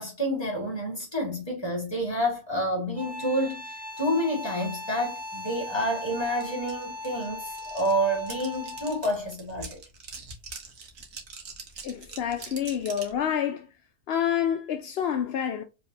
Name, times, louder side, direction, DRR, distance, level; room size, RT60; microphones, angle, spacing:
voice 1, 0.0-9.8, equal, 15° left, 2.2 m, -29 dB
sound 1, 2.9-9.2, left 2 dB, 20° right, 1.6 m, -38 dB
sound 2, 6.4-6.5 6.7-13.2, right 4 dB, 60° right, 1.4 m, -43 dB
voice 2, 11.8-13.7 14.1-15.6, left 9 dB, 70° left, 0.6 m, -28 dB
4.6 x 3.6 x 2.8 m
omnidirectional pair, 1.6 m